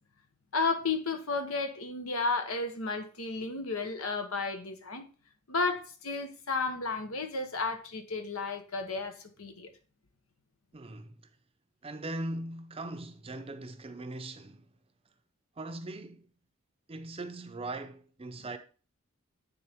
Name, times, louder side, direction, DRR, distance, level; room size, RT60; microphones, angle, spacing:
voice 1, 0.5-5.0 5.5-9.7, left 4 dB, 85° left, 1.1 m, -33 dB
voice 2, 10.7-11.2 11.8-14.7 15.6-16.3 16.9-18.6, right 2 dB, 25° right, 0.6 m, -40 dB
9.4 x 3.9 x 3.5 m
head